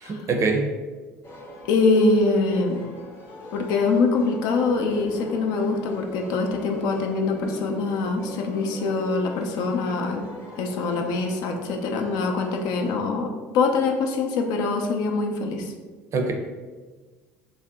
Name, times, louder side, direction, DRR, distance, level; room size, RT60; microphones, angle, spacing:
voice 1, 0.0-0.7 16.1-16.3, right 3 dB, 40° right, 2 dB, 0.5 m, -23 dB
sound 1, 1.2-13.0, left 1 dB, 30° left, 0.8 m, -42 dB
voice 2, 1.7-2.8 3.5-10.3 10.6-15.7, left 3 dB, 60° left, 2 dB, 0.5 m, -24 dB
2.6 x 2.1 x 3.4 m, 1.3 s
hypercardioid pair, 70°, 7 cm